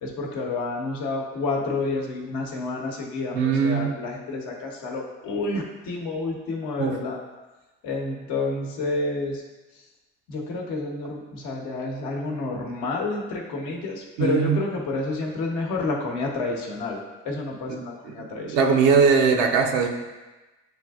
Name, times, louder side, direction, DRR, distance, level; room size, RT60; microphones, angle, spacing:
voice 1, 0.0-7.2 7.8-9.4 10.3-17.0 17.2-18.6, left 3 dB, 75° left, -1 dB, 0.9 m, -29 dB
voice 2, 3.3-3.9 6.8-7.0 14.2-14.6 17.7-17.8 18.4-19.9, right 5 dB, 80° right, 1 dB, 0.6 m, -20 dB
7.7 x 2.6 x 2.3 m, 1.1 s
hypercardioid pair, 60°, 31 cm